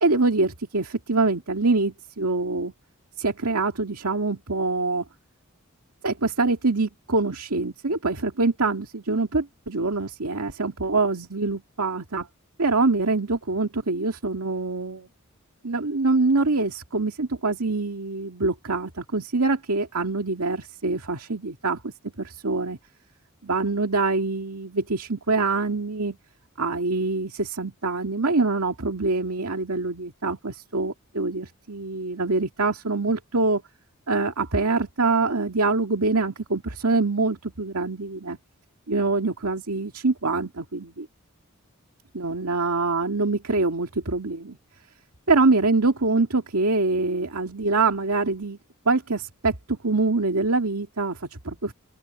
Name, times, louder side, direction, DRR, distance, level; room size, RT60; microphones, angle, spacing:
voice 1, 0.0-2.7 3.2-5.0 6.0-12.3 12.6-15.1 15.6-22.8 23.4-26.2 26.6-33.6 34.1-38.4 38.9-41.1 42.1-44.6 45.3-48.6 48.9-51.7, right 3 dB, 85° right, 2.2 m, -24 dB
open air
head